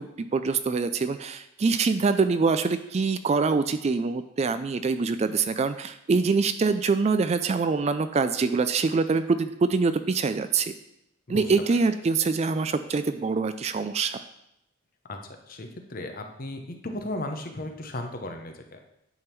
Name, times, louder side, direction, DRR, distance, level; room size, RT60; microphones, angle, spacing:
voice 1, 0.0-10.7 11.3-14.2, right 4 dB, 30° right, 11 dB, 0.3 m, -24 dB
voice 2, 15.5-18.8, left 1 dB, 45° left, 4 dB, 0.9 m, -35 dB
9.6 x 3.6 x 5.9 m, 0.80 s
head